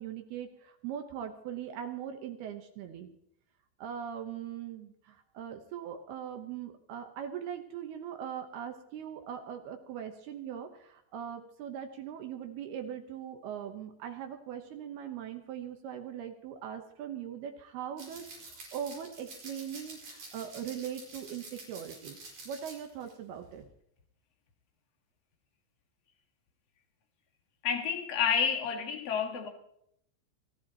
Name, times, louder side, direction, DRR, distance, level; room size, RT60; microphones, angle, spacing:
voice 1, 0.0-3.1 3.8-22.2 22.5-23.6, right 9 dB, 75° right, 6 dB, 2.5 m, -40 dB
sound 1, 18.0-23.1 23.4-23.7, right 3 dB, 40° right, 6.3 m, -48 dB
voice 2, 27.6-29.5, left 7 dB, 55° left, 3 dB, 1.7 m, -29 dB
28.0 x 13.5 x 3.0 m, 0.71 s
omnidirectional pair, 5.7 m